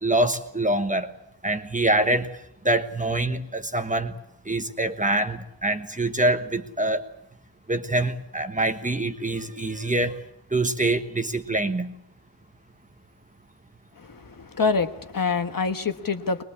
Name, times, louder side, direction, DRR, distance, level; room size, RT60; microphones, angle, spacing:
voice 1, 0.0-1.1 1.4-2.3 2.6-4.1 4.4-7.0 7.7-10.2 10.5-11.9, right 2 dB, 15° right, 7 dB, 1.3 m, -25 dB
voice 2, 14.0-16.4, left 4 dB, 45° left, 8 dB, 1.4 m, -26 dB
22.5 x 22.0 x 8.5 m, 0.80 s
wide cardioid pair, 170°, 47 cm